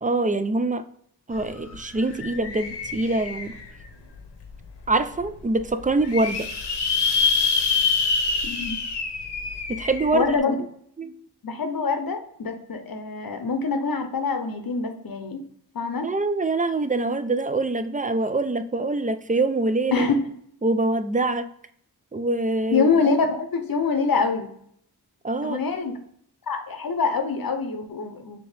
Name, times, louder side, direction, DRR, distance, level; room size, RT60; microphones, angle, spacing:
voice 1, 0.0-0.8 1.3-3.5 4.9-6.5 9.7-10.3 11.0-11.2 16.0-20.1 20.6-21.5 22.1-22.9 25.2-25.6, right 2 dB, 20° right, 10 dB, 0.3 m, -24 dB
sound 1, 1.3-1.4 1.7-3.8 4.4-4.5 4.9-5.0 5.1-5.2 5.8-10.4, left 5 dB, 90° left, 0.8 m, -26 dB
voice 2, 8.4-8.8 10.1-10.5 11.4-15.4 15.7-16.1 19.9-20.2 22.7-24.5 25.4-26.0 26.5-28.4, left 4 dB, 60° left, 6 dB, 0.7 m, -25 dB
4.4 x 2.8 x 3.3 m, 0.66 s
wide cardioid pair, 65°, 40 cm